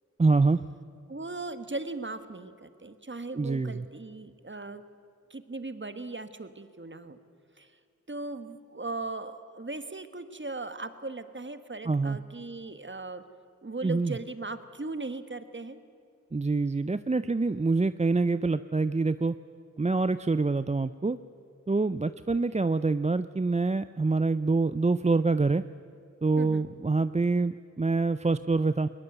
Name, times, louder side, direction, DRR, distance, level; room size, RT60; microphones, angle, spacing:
voice 1, 0.2-0.6 3.4-3.8 11.9-12.2 13.8-14.1 16.3-19.4 19.8-21.2 21.7-25.6 26.2-28.9, right 3 dB, 25° right, 13 dB, 0.5 m, -26 dB
voice 2, 1.1-4.8 5.3-7.2 7.6-7.7 8.1-13.2 13.6-15.8 26.4-26.7, right 3 dB, 40° right, 10 dB, 1.4 m, -38 dB
21.0 x 21.0 x 8.0 m, 2.5 s
wide cardioid pair, 60°, 30 cm